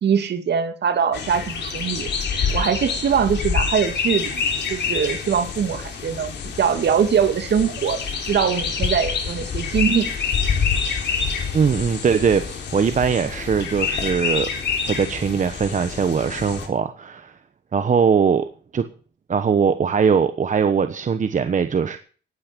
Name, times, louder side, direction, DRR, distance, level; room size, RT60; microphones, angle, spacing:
voice 1, 0.0-2.1 2.5-10.1, right 7 dB, 60° right, 2.5 m, -22 dB
sound 1, 1.1-16.7, left 6 dB, 60° left, 3.5 m, -26 dB
voice 2, 11.5-14.5 14.9-17.4 17.7-18.5 18.7-18.9 19.3-22.0, right 6 dB, 40° right, 1.1 m, -21 dB
19.0 x 8.9 x 5.3 m
cardioid pair, 90°, 20 cm